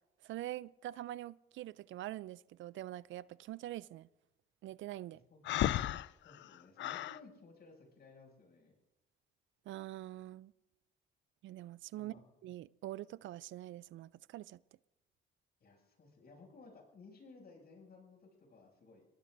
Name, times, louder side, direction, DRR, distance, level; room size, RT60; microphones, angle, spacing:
voice 1, 0.2-4.1 4.6-5.2 9.7-10.5 11.4-12.1 12.4-14.6, right 14 dB, 75° right, 0.4 m, -44 dB
Breathing, 5.4-7.2, left 13 dB, 70° left, 0.5 m, -34 dB
voice 2, 6.2-8.7 11.9-12.3 15.6-19.1, left 3 dB, 55° left, 6.9 m, -58 dB
28.0 x 19.5 x 2.6 m
cardioid pair, 90°, 20 cm